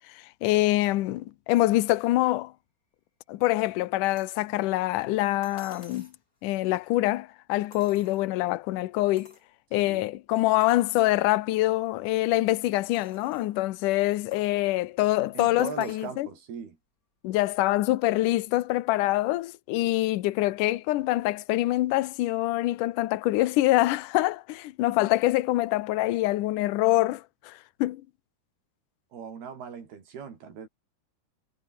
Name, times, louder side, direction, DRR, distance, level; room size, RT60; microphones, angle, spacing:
voice 1, 0.1-2.5 3.3-6.1 6.4-9.3 9.7-16.3 17.2-28.0, left 17 dB, 70° left, 2.2 m, -25 dB
sound 1, 4.2-4.5 5.4-6.2 7.7-8.5 9.2-9.5 10.0-10.1 10.6-11.1 11.7-11.8 12.9-13.5 14.3-14.6 15.6-16.2 17.4-17.5, left 2 dB, 20° left, 5.6 m, -53 dB
voice 2, 9.7-10.0 15.3-16.8 29.1-30.7, right 6 dB, 75° right, 6.0 m, -39 dB
omnidirectional pair, 4.5 m